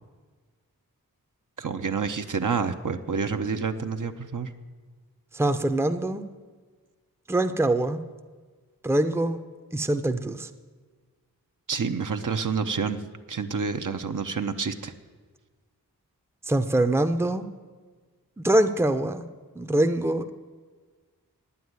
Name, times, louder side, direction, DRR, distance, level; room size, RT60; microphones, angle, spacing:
voice 1, 1.6-4.5 11.7-13.0 13.3-14.9, right 5 dB, 60° right, 7 dB, 0.8 m, -28 dB
voice 2, 5.3-6.2 7.3-8.0 8.8-9.4 9.7-10.5 16.5-17.5 18.4-19.3 19.5-20.3, right 1 dB, 5° right, 8 dB, 0.6 m, -24 dB
9.0 x 8.4 x 9.4 m, 1.5 s
cardioid pair, 50°, 36 cm